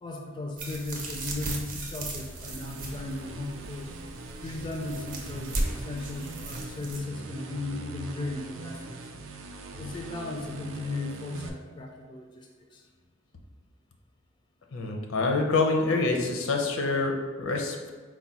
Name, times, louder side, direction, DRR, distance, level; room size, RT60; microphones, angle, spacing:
voice 1, 0.0-3.9 4.4-9.0 9.8-12.8, left 2 dB, 20° left, 1 dB, 0.4 m, -36 dB
sound 1, 0.6-7.0, right 1 dB, 40° right, 0.6 m, -36 dB
sound 2, 2.1-11.5, right 2 dB, 80° right, 0.4 m, -42 dB
voice 2, 14.7-17.9, left 3 dB, 85° left, 2 dB, 0.6 m, -26 dB
4.6 x 2.2 x 4.1 m, 1.5 s
head